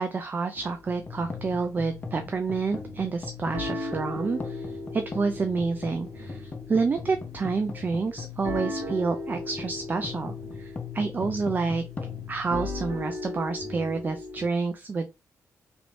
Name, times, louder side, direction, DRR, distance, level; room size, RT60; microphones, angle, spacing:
voice 1, 0.0-11.8 12.3-15.1, right 4 dB, 30° right, 6 dB, 0.3 m, -29 dB
sound 1, 0.5-1.7 2.0-2.4 2.8-3.2 3.5-14.5, left 2 dB, 80° right, 1.6 m, -38 dB
sound 2, 0.9-13.3, left 5 dB, 30° left, 0.5 m, -40 dB
3.1 x 2.6 x 3.1 m, 0.26 s
cardioid pair, 115°, 6 cm